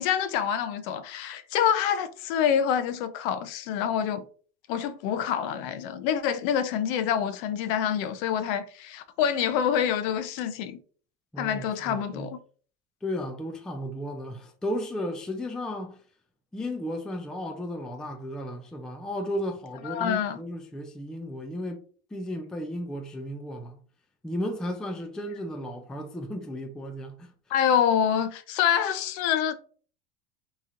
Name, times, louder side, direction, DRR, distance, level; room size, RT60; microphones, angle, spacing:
voice 1, 0.0-4.2 4.7-10.8 11.4-12.4 19.8-20.4 27.5-29.6, left 8 dB, 60° left, 0.7 m, -26 dB
voice 2, 11.3-12.3 13.0-16.0 16.5-21.8 22.1-23.8 24.2-27.3, equal, ahead, 0.3 m, -34 dB
4.1 x 3.0 x 3.7 m
supercardioid pair, 145°, 31 cm